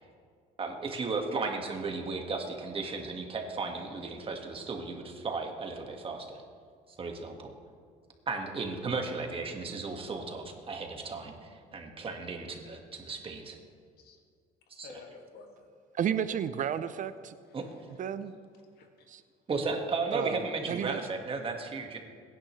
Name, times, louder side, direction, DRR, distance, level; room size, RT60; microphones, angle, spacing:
voice 1, 0.6-6.4 7.0-7.5 8.3-13.6 14.7-14.9 17.5-17.6 19.5-22.0, right 4 dB, 35° right, 3 dB, 1.8 m, -35 dB
voice 2, 14.8-15.7 17.5-18.2 18.7-19.1, left 4 dB, 70° left, 2 dB, 2.1 m, -52 dB
voice 3, 15.9-17.4 18.0-18.3 19.1-19.2 20.1-20.4 20.7-21.0, right 9 dB, 50° right, 13 dB, 0.6 m, -32 dB
22.0 x 10.5 x 3.2 m, 2.1 s
cardioid pair, 110°, 17 cm